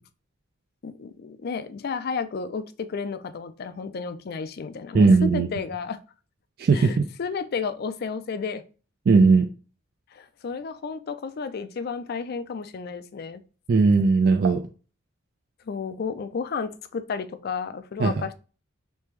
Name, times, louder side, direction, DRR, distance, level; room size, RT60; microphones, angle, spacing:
voice 1, 0.8-6.0 6.7-8.6 10.1-13.4 15.7-18.3, left 5 dB, 50° left, 0.4 m, -32 dB
voice 2, 4.9-5.5 6.6-7.1 9.1-9.5 13.7-14.6 18.0-18.1, right 4 dB, 50° right, 0.3 m, -18 dB
3.4 x 3.2 x 3.1 m
head